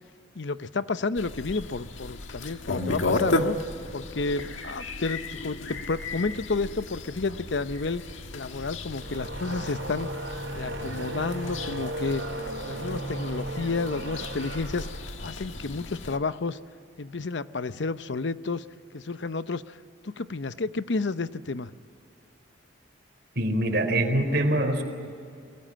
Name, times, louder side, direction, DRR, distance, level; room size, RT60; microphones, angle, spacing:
voice 1, 0.3-3.6 3.9-8.0 8.3-10.1 10.5-12.2 12.6-14.9 15.2-16.6 17.0-18.6 18.9-19.8 20.0-21.7, left 3 dB, 70° left, 13 dB, 0.7 m, -31 dB
sound 1, 1.2-16.2, left 2 dB, 90° left, 1.7 m, -34 dB
sound 2, 8.9-16.3, right 1 dB, 75° right, 4.3 m, -36 dB
voice 2, 23.4-24.8, right 1 dB, 55° right, 5 dB, 4.0 m, -24 dB
23.0 x 23.0 x 8.8 m, 2.4 s
head